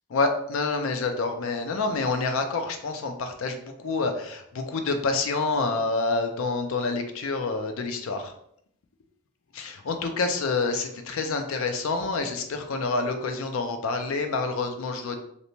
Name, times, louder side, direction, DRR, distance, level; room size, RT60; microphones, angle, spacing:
voice 1, 0.1-8.3 9.6-15.2, left 3 dB, 60° left, 6 dB, 0.4 m, -27 dB
2.6 x 2.1 x 2.9 m, 0.71 s
head